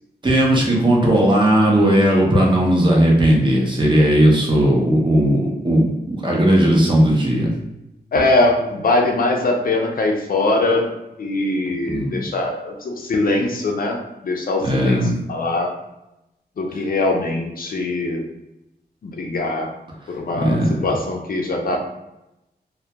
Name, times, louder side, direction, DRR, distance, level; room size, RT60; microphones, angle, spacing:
voice 1, 0.2-7.5 11.9-12.2 14.6-15.2 20.4-20.9, right 1 dB, 30° right, -2 dB, 0.6 m, -16 dB
voice 2, 8.1-10.9 11.2-14.0 14.2-15.7 16.6-18.2 19.0-19.7 20.1-21.8, left 2 dB, 55° left, 1 dB, 0.4 m, -21 dB
2.2 x 2.1 x 2.7 m, 0.89 s
wide cardioid pair, 115°, 17 cm